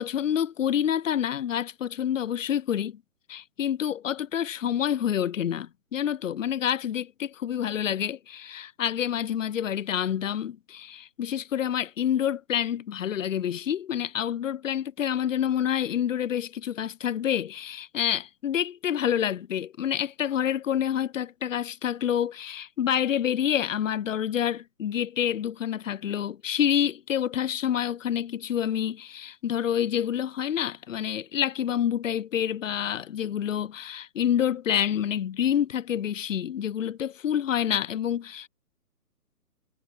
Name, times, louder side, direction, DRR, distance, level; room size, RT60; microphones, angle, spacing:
voice 1, 0.0-3.0 3.3-38.5, left 9 dB, 55° left, 0.8 m, -28 dB
figure-of-eight pair, 135°, 47 cm